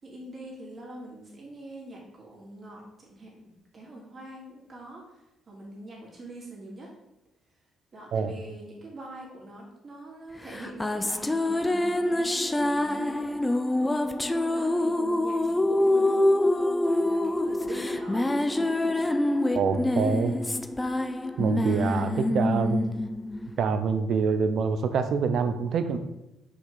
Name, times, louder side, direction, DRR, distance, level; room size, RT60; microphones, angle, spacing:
voice 1, 0.0-5.2 5.5-6.9 7.9-13.3 13.8-14.0 14.5-19.4, right 1 dB, 40° right, -3 dB, 3.2 m, -44 dB
sound 1, 10.5-24.2, left 1 dB, 15° left, 0.5 m, -26 dB
voice 2, 19.5-20.4 21.4-22.8 23.6-26.0, right 5 dB, 65° right, 9 dB, 0.9 m, -26 dB
6.3 x 5.1 x 5.8 m, 0.90 s
cardioid pair, 90°, 0 cm